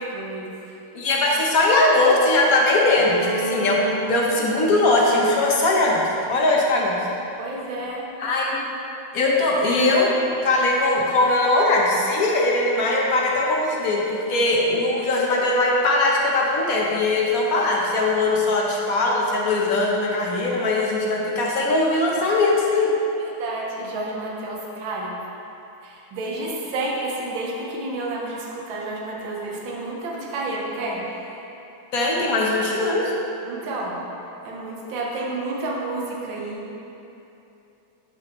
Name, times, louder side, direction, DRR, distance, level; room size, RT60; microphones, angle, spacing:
voice 1, 0.1-0.5 7.4-8.1 23.4-25.2 25.8-31.0 31.3-31.4 33.4-34.0 34.4-36.6, right 2 dB, 70° right, -3 dB, 1.7 m, -30 dB
voice 2, 0.9-3.8 4.1-7.0 8.2-8.6 9.1-22.9 31.9-33.1, left 2 dB, 55° left, -3 dB, 1.2 m, -20 dB
Bowed string instrument, 3.0-6.8, right 1 dB, 90° right, 2.4 m, -35 dB
13.0 x 4.7 x 3.0 m, 2.9 s
omnidirectional pair, 2.3 m